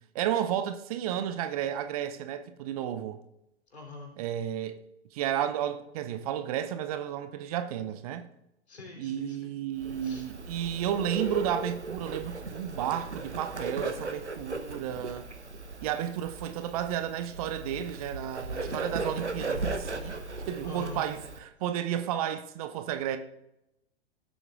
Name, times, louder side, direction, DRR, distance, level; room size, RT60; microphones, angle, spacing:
voice 1, 0.1-3.2 4.2-4.8 5.1-8.3 9.0-15.3 15.8-20.2 20.5-23.2, right 10 dB, 35° right, 0.6 m, -32 dB
voice 2, 3.7-4.1 8.7-9.5 10.0-10.2 20.6-21.0, left 3 dB, 70° left, 3.4 m, -43 dB
Bird, 9.8-21.4, right 3 dB, 90° right, 0.9 m, -37 dB
15.5 x 7.9 x 2.4 m
figure-of-eight pair, 105°, 33 cm